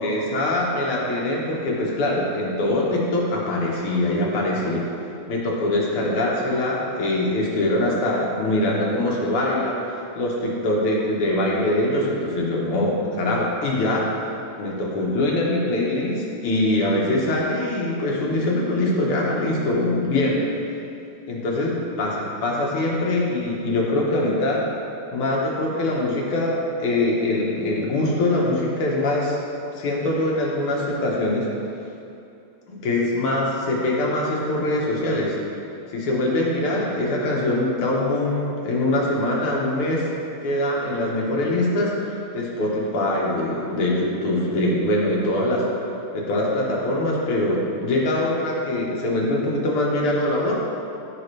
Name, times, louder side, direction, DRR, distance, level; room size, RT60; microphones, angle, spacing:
voice 1, 0.0-4.9 5.3-9.8 10.2-14.1 14.6-20.4 21.3-24.7 25.1-29.4 29.8-31.5 32.7-35.4 35.9-40.1 40.4-45.7 46.1-50.6, left 1 dB, 60° left, -3 dB, 1.8 m, -23 dB
14.5 x 5.1 x 3.3 m, 2.6 s
omnidirectional pair, 3.4 m